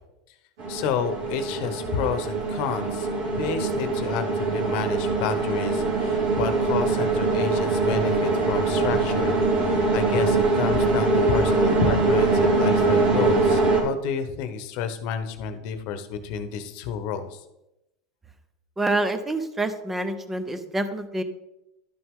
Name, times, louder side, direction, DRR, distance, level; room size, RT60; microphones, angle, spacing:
sound 1, 0.6-13.8, right 3 dB, 70° right, 2.8 m, -23 dB
voice 1, 0.7-3.1 3.4-17.4, left 7 dB, 60° left, 9 dB, 1.0 m, -30 dB
voice 2, 18.8-21.2, right 2 dB, 10° right, 10 dB, 0.8 m, -27 dB
12.0 x 6.0 x 3.8 m, 0.90 s
supercardioid pair, 135°, 2 cm